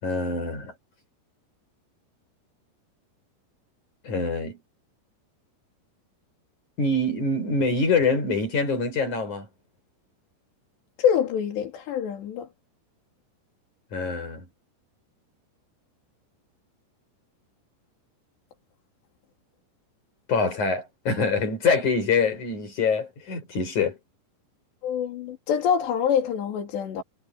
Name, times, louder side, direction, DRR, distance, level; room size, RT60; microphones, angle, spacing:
voice 1, 0.0-0.7 4.0-4.6 6.8-9.5 13.9-14.5 20.3-24.0, left 3 dB, 45° left, 7.4 m, -25 dB
voice 2, 11.0-12.5 24.8-27.0, left 8 dB, 80° left, 5.1 m, -25 dB
omnidirectional pair, 4.9 m